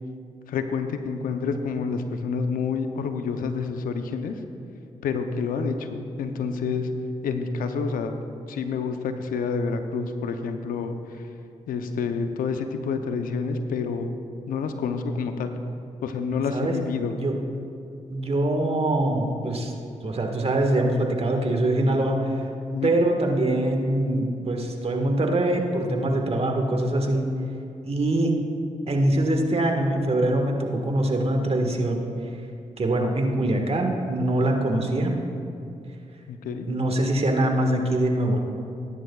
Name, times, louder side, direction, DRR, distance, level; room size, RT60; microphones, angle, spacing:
voice 1, 0.5-4.4 5.0-6.9 7.2-8.1 8.5-11.2 11.7-14.1 14.5-15.5 16.0-17.1 22.7-22.9 36.3-36.7, left 5 dB, 85° left, 7 dB, 0.7 m, -28 dB
voice 2, 18.1-19.7 20.0-22.4 22.8-27.3 27.8-28.4 28.9-32.1 32.8-35.1 36.7-38.4, right 1 dB, 45° right, 2 dB, 1.6 m, -23 dB
17.0 x 10.0 x 2.4 m, 2.7 s
supercardioid pair, 45°, 14 cm